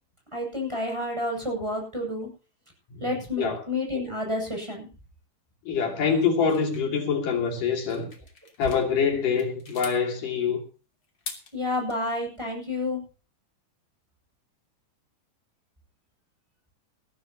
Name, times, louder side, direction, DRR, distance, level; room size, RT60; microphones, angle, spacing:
voice 1, 0.3-2.3 3.0-4.9 11.5-13.0, left 2 dB, 10° right, 8.0 m, -30 dB
voice 2, 5.7-8.1 8.6-10.6, left 6 dB, 80° left, 4.6 m, -25 dB
sound 1, 6.5-8.9 9.3-10.0 11.0-11.9, left 4 dB, 35° left, 3.4 m, -43 dB
21.0 x 14.5 x 2.9 m
omnidirectional pair, 3.7 m